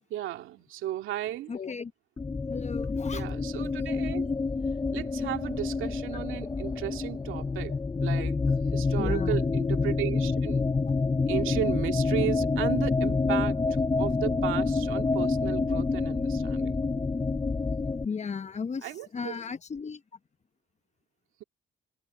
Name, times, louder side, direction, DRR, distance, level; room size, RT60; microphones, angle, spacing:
voice 1, 0.1-1.5 3.1-4.3 4.9-7.8 8.0-8.4 8.7-10.6 11.3-13.6 14.0-16.8 18.8-19.4, right 13 dB, 90° right, 2.3 m, -34 dB
voice 2, 1.5-1.9 2.5-3.3 9.0-9.4 18.0-20.0, left 5 dB, 35° left, 1.1 m, -35 dB
sound 1, 2.2-18.1, left 4 dB, 20° left, 0.7 m, -28 dB
cardioid pair, 90°, 20 cm